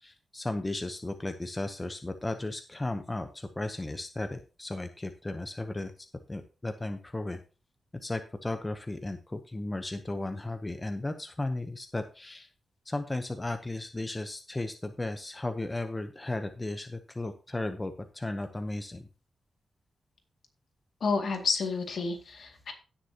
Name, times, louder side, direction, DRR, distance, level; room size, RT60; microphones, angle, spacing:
voice 1, 0.0-5.9 6.3-7.4 8.0-12.5 12.9-19.0, left 2 dB, 15° left, 7 dB, 0.7 m, -35 dB
voice 2, 21.0-22.7, left 4 dB, 60° left, 4 dB, 2.2 m, -30 dB
17.0 x 6.5 x 2.8 m, 0.34 s
wide cardioid pair, 145°, 0 cm